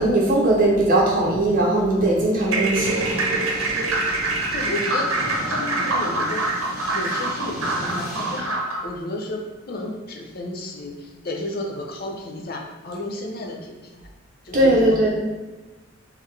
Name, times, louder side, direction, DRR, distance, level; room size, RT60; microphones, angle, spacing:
voice 1, 0.0-3.2 14.5-15.1, right 1 dB, 40° right, -4 dB, 0.7 m, -19 dB
sound 1, 2.4-8.9, right 2 dB, 75° right, 0.7 m, -25 dB
voice 2, 2.7-3.1 4.5-6.5 6.9-14.0 14.4-15.1, left 2 dB, 45° left, 1 dB, 0.6 m, -33 dB
sound 2, 2.7-8.4, equal, 5° right, 1.1 m, -34 dB
3.8 x 3.2 x 3.2 m, 1.2 s
head